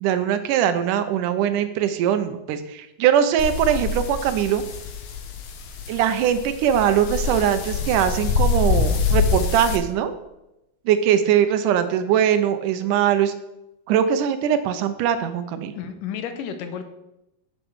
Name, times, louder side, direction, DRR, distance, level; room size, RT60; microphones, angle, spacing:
voice 1, 0.0-4.6 5.9-10.1 10.9-13.3 13.9-15.7, right 9 dB, 80° right, 10 dB, 2.2 m, -21 dB
sound 1, 3.4-9.8, left 5 dB, 65° left, 2.2 m, -25 dB
voice 2, 15.8-16.9, left 8 dB, 85° left, 8 dB, 2.5 m, -32 dB
8.1 x 7.4 x 6.1 m, 0.90 s
omnidirectional pair, 3.8 m